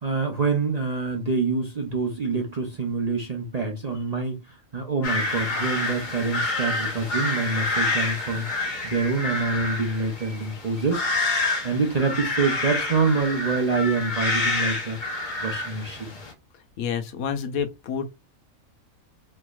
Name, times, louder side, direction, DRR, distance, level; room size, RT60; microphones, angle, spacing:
voice 1, 0.0-11.0 11.6-15.0 15.4-16.1, right 4 dB, 40° right, 0.6 m, -26 dB
sound 1, 5.0-16.3, left 2 dB, 40° left, 1.0 m, -28 dB
voice 2, 16.8-18.1, left 7 dB, 85° left, 1.2 m, -28 dB
4.5 x 3.1 x 2.3 m
omnidirectional pair, 1.5 m